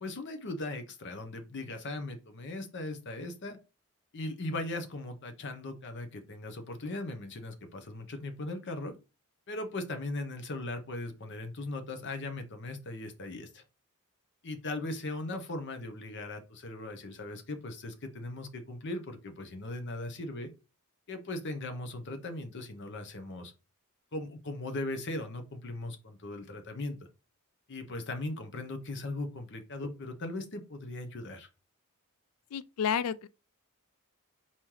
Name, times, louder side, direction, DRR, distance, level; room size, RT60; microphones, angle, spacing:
voice 1, 0.0-3.6 4.1-8.9 9.5-13.6 14.4-20.5 21.1-23.5 24.1-27.0 27.7-31.5, left 2 dB, 55° left, 0.8 m, -38 dB
voice 2, 32.5-33.3, left 8 dB, 75° left, 0.3 m, -30 dB
4.2 x 3.1 x 3.7 m
head